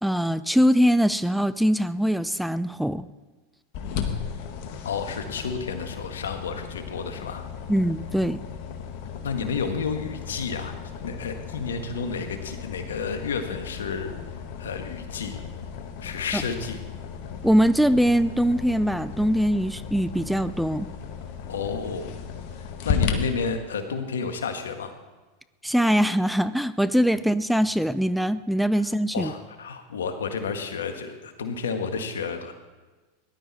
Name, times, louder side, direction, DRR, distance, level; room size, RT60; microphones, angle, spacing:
voice 1, 0.0-3.1 7.7-8.4 16.3-16.4 17.4-20.9 25.6-29.3, equal, ahead, 14 dB, 0.5 m, -22 dB
sound 1, 3.7-23.1, left 7 dB, 55° left, 1.8 m, -35 dB
voice 2, 4.8-7.4 9.2-10.7 11.0-14.1 14.6-15.4 16.0-16.8 21.5-22.1 22.6-24.9 28.8-28.9 29.1-32.6, left 5 dB, 75° left, 7 dB, 1.6 m, -31 dB
18.5 x 11.5 x 4.2 m, 1.3 s
figure-of-eight pair, 90°, 0 cm